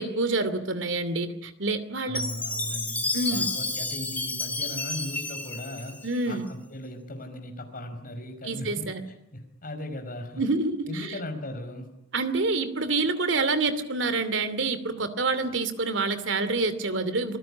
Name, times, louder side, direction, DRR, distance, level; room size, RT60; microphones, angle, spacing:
voice 1, 0.0-2.2 3.1-3.5 6.0-6.4 8.4-9.0 10.4-11.1 12.1-17.4, right 3 dB, 75° right, 12 dB, 2.7 m, -27 dB
voice 2, 2.0-6.0 6.3-10.4 10.8-11.9, left 1 dB, 45° left, 5 dB, 5.1 m, -38 dB
Chime, 2.1-6.5, left 2 dB, 10° left, 3.3 m, -31 dB
26.0 x 19.5 x 9.8 m, 0.81 s
head